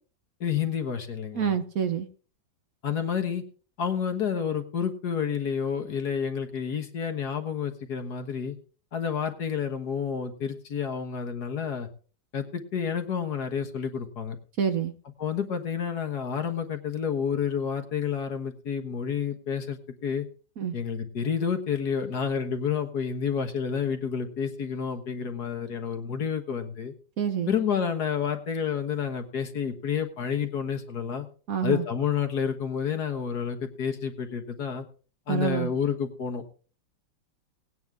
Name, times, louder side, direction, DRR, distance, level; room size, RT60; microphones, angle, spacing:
voice 1, 0.4-1.6 2.8-3.4 3.8-8.6 8.9-11.9 12.3-14.4 15.2-20.3 20.7-26.9 27.5-31.3 31.6-34.9 35.3-36.4, left 7 dB, 60° left, 6 dB, 1.9 m, -29 dB
voice 2, 1.3-2.1 14.6-14.9 20.6-20.7 27.2-27.5 31.5-31.8 35.3-35.7, right 7 dB, 55° right, 8 dB, 1.2 m, -27 dB
18.5 x 9.4 x 3.6 m, 0.39 s
omnidirectional pair, 2.0 m